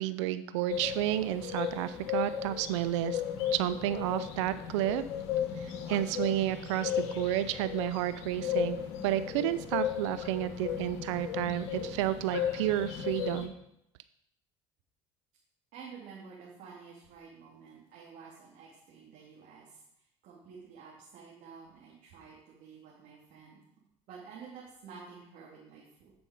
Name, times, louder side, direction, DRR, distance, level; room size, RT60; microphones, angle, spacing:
voice 1, 0.0-3.2 3.5-5.0 5.6-8.8 9.0-13.5, right 13 dB, 80° right, 13 dB, 0.5 m, -31 dB
sound 1, 0.7-13.5, left 10 dB, 75° left, 1.3 m, -35 dB
voice 2, 15.7-19.8 20.2-23.6 24.1-26.1, right 5 dB, 65° right, -5 dB, 2.4 m, -50 dB
10.0 x 5.3 x 4.9 m, 0.78 s
hypercardioid pair, 70°, 15 cm